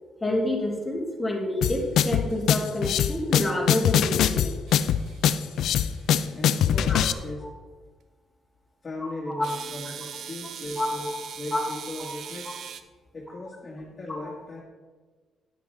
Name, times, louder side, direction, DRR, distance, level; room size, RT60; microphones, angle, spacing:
voice 1, 0.2-4.5 6.9-7.0 7.4-7.5 9.3-9.5 10.8-11.2 11.5-11.6 12.0-12.1, left 1 dB, 5° left, -3 dB, 2.9 m, -28 dB
sound 1, 1.6-7.1, left 9 dB, 80° left, 0.4 m, -22 dB
sound 2, 4.7-7.3 9.4-12.8, right 7 dB, 65° right, 0.7 m, -42 dB
voice 2, 6.3-7.4 8.8-11.1 11.4-12.5 13.1-14.6, left 2 dB, 30° left, -4 dB, 2.0 m, -37 dB
9.8 x 9.6 x 3.6 m, 1.4 s
cardioid pair, 90°, 0 cm